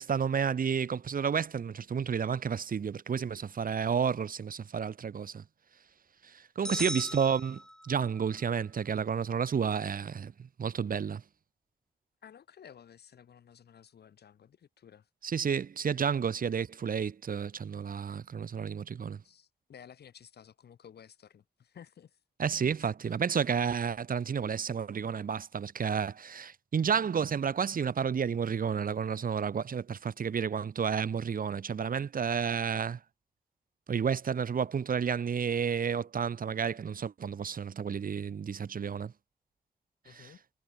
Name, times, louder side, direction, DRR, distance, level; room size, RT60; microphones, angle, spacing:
voice 1, 0.0-5.4 6.2-7.6 7.8-11.2 15.2-19.2 22.4-33.0 33.9-39.1 40.2-40.3, right 7 dB, 60° right, 0.8 m, -31 dB
sound 1, 6.6-8.2, left 1 dB, 5° left, 0.5 m, -38 dB
voice 2, 6.7-7.2 12.2-15.1 19.2-22.2 22.5-23.2 40.0-40.4, left 8 dB, 85° left, 3.8 m, -54 dB
cardioid pair, 45°, 16 cm